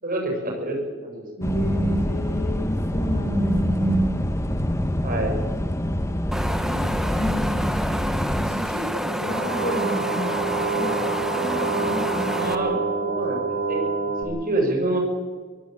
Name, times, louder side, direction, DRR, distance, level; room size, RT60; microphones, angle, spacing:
voice 1, 0.0-1.3 5.0-5.4 12.2-13.4 13.7-15.0, right 2 dB, 45° right, 1 dB, 6.1 m, -27 dB
voice 2, 1.4-4.1 6.6-7.7 8.3-10.4 10.7-12.3, right 1 dB, 40° left, 0 dB, 4.5 m, -29 dB
sound 1, 1.4-8.5, left 1 dB, 15° left, 1.3 m, -25 dB
Wind, 6.3-12.5, equal, ahead, 1.2 m, -28 dB
sound 2, 9.2-14.2, right 4 dB, 85° right, 5.0 m, -27 dB
23.0 x 15.5 x 8.9 m, 1.5 s
head